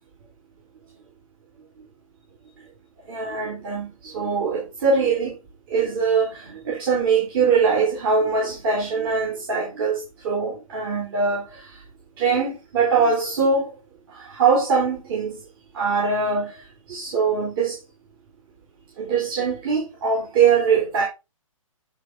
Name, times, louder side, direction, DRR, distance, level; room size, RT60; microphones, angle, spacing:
voice 1, 3.1-3.9 4.1-5.3 5.7-11.4 12.2-13.7 14.3-15.4 15.7-16.6 16.9-17.7 19.0-21.0, right 5 dB, 45° right, 3.9 m, -22 dB
10.0 x 4.8 x 4.1 m
hypercardioid pair, 140°, 18 cm